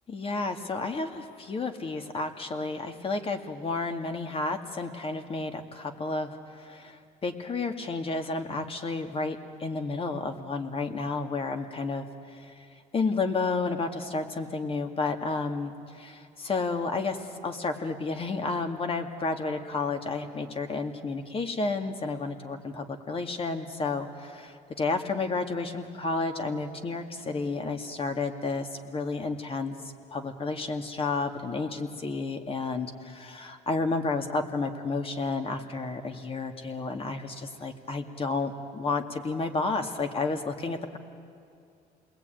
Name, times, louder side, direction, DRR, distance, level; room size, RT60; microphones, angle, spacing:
voice 1, 0.1-12.7 12.9-29.8 30.1-41.0, left 3 dB, 35° left, 6 dB, 2.3 m, -31 dB
29.5 x 21.0 x 9.3 m, 2.5 s
cardioid pair, 110°, 17 cm